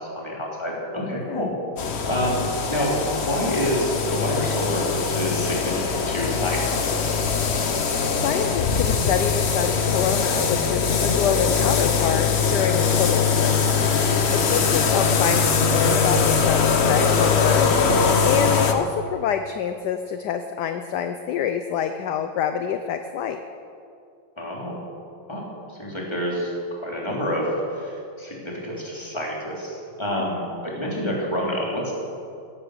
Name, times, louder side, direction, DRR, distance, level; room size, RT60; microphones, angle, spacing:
voice 1, 0.0-1.5 2.0-7.2 24.4-24.8 25.3-25.4 25.7-31.9, equal, 15° left, -3 dB, 3.4 m, -28 dB
sound 1, 1.8-18.7, left 5 dB, 40° left, 1.0 m, -22 dB
voice 2, 8.2-13.6 14.3-23.4 30.1-30.3, left 8 dB, 65° left, 8 dB, 1.2 m, -27 dB
17.0 x 13.0 x 6.5 m, 2.5 s
omnidirectional pair, 2.2 m